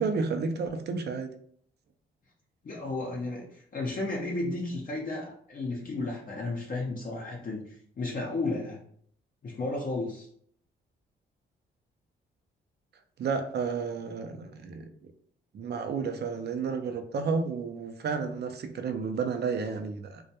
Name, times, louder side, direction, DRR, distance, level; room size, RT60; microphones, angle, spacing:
voice 1, 0.0-1.3 13.2-14.9 15.5-20.2, right 5 dB, 55° right, 7 dB, 0.5 m, -31 dB
voice 2, 2.6-8.8 9.4-10.3, left 2 dB, 45° left, -2 dB, 0.6 m, -33 dB
2.2 x 2.1 x 2.8 m, 0.62 s
supercardioid pair, 65°, 21 cm